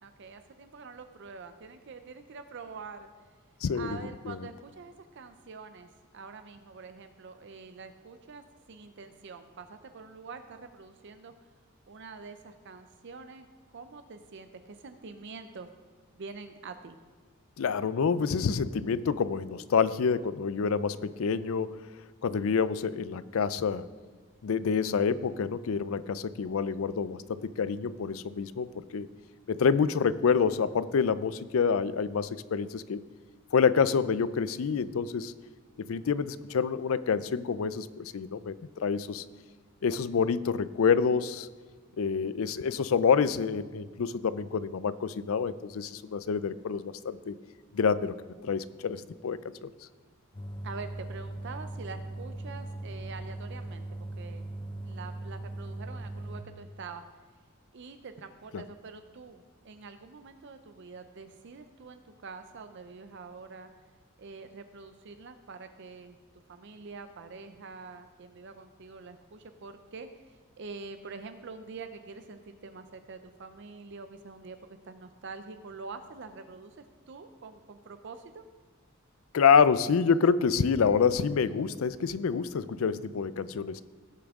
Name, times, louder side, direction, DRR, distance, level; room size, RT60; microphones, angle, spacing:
voice 1, 0.0-3.1 3.7-11.3 11.9-15.7 16.1-17.0 50.6-53.9 54.2-54.5 54.8-57.0 57.7-63.7 64.2-66.2 66.5-78.4, right 4 dB, 55° right, 8 dB, 0.5 m, -45 dB
voice 2, 3.6-4.0 4.3-4.4 17.6-21.8 22.2-23.9 24.4-29.1 29.5-33.0 33.5-35.3 35.8-39.2 39.8-41.5 42.0-47.3 47.7-48.2 48.4-49.7 58.5-58.6 79.3-83.8, left 6 dB, 75° left, 16 dB, 0.4 m, -27 dB
sound 1, 50.3-56.4, right 2 dB, 25° left, 0.6 m, -39 dB
16.5 x 7.0 x 3.6 m, 1.5 s
head